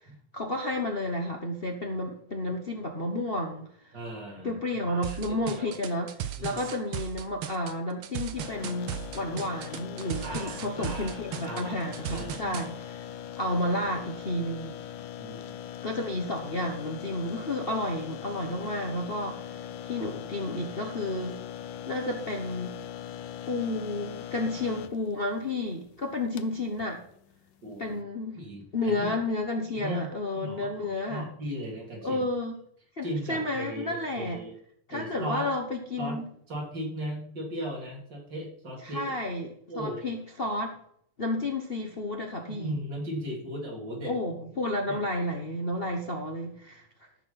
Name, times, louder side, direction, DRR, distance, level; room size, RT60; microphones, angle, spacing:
voice 1, 0.3-3.7 4.4-6.1 6.4-13.1 13.4-14.7 15.8-21.4 21.9-22.8 23.5-27.0 27.8-28.4 28.7-31.3 32.0-32.5 33.0-34.4 34.9-36.3 38.8-39.5 39.7-40.8 41.2-42.7 44.1-46.9, left 1 dB, 35° left, 2 dB, 1.1 m, -31 dB
voice 2, 3.9-5.8 6.4-6.6 10.2-12.6 15.2-15.6 27.6-28.0 28.3-29.1 29.7-32.2 33.0-34.5 34.9-35.5 36.0-36.2 36.5-39.1 39.7-40.0 42.5-44.1 44.9-45.0, equal, 55° right, -2 dB, 4.1 m, -37 dB
sound 1, 5.0-12.7, right 9 dB, 80° right, 1.8 m, -36 dB
sound 2, 8.4-28.0, left 10 dB, 70° left, 1.2 m, -41 dB
14.0 x 6.3 x 5.8 m, 0.66 s
omnidirectional pair, 2.4 m